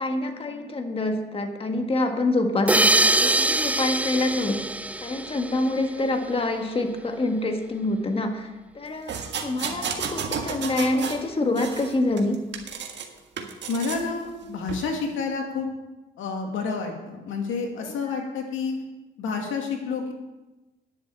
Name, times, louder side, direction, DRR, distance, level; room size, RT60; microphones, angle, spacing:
voice 1, 0.0-4.6 5.0-12.4 17.8-17.9, left 2 dB, 30° left, 4 dB, 1.6 m, -26 dB
sound 1, 2.7-6.0, right 2 dB, 5° right, 0.4 m, -23 dB
sound 2, 9.1-11.2 11.6-13.1 13.4-14.1 14.7-14.9, right 6 dB, 65° right, 1.6 m, -32 dB
voice 2, 13.7-15.7 16.2-18.7 19.2-20.1, left 4 dB, 80° left, 2 dB, 2.5 m, -29 dB
10.5 x 7.5 x 8.7 m, 1.1 s
cardioid pair, 90°, 20 cm